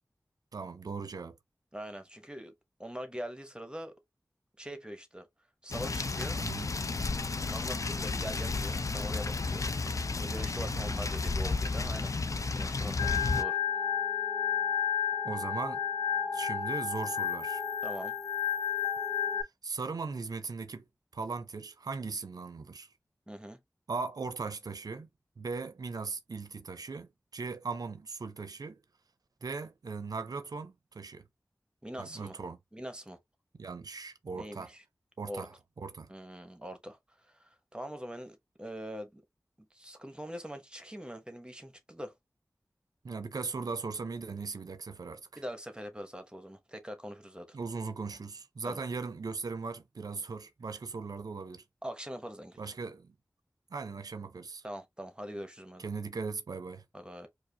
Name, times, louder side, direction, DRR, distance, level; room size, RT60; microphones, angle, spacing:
voice 1, 0.5-1.4 6.4-6.7 10.7-10.9 15.2-15.8 16.3-17.6 19.6-20.8 21.1-22.9 23.9-25.1 25.4-28.8 29.4-31.2 32.0-32.6 33.5-34.7 35.2-35.5 35.8-36.1 43.0-45.4 47.5-51.6 52.6-53.1 53.7-54.6 55.8-56.8, right 4 dB, 85° right, 0.5 m, -38 dB
voice 2, 1.7-2.5 2.8-4.0 4.6-5.3 5.6-6.4 7.4-12.1 12.5-13.6 17.8-18.2 23.3-23.6 31.8-32.4 32.7-33.2 34.3-34.8 35.3-35.5 36.1-39.2 39.7-42.1 45.4-47.6 48.6-48.9 51.8-52.7 54.6-55.8 56.9-57.3, equal, 15° right, 0.9 m, -43 dB
sound 1, 5.7-13.4, left 3 dB, 60° left, 0.4 m, -32 dB
Organ, 13.0-19.4, left 8 dB, 80° left, 0.8 m, -31 dB
4.8 x 2.1 x 2.8 m
wide cardioid pair, 40°, 6 cm